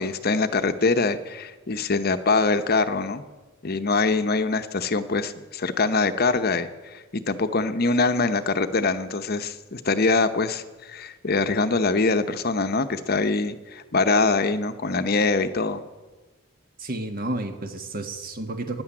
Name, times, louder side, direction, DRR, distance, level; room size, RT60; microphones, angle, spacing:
voice 1, 0.0-3.2 3.6-15.8, left 3 dB, 50° left, 10 dB, 0.8 m, -24 dB
voice 2, 16.8-18.8, right 2 dB, 45° right, 7 dB, 1.6 m, -31 dB
15.5 x 10.5 x 8.7 m, 1.2 s
head